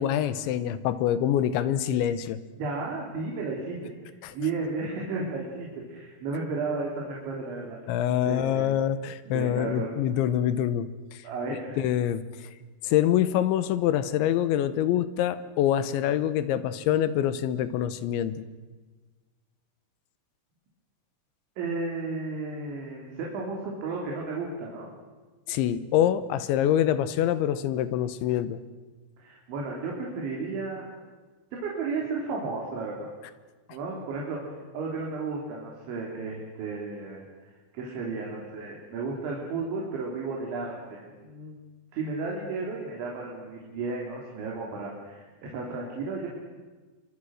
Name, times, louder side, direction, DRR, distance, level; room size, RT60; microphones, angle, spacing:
voice 1, 0.0-2.4 4.2-4.3 7.9-11.2 11.8-12.5 12.8-18.4 25.5-28.6, left 11 dB, 90° left, 13 dB, 3.4 m, -25 dB
voice 2, 2.6-3.9 4.3-7.8 8.2-8.7 9.3-10.0 11.2-11.8 21.6-24.9 29.2-30.9 31.5-33.1 33.7-34.4 34.7-37.3 37.7-41.6 41.9-46.3, right 3 dB, 85° right, -2 dB, 5.8 m, -33 dB
28.5 x 24.0 x 6.5 m, 1.3 s
omnidirectional pair, 5.2 m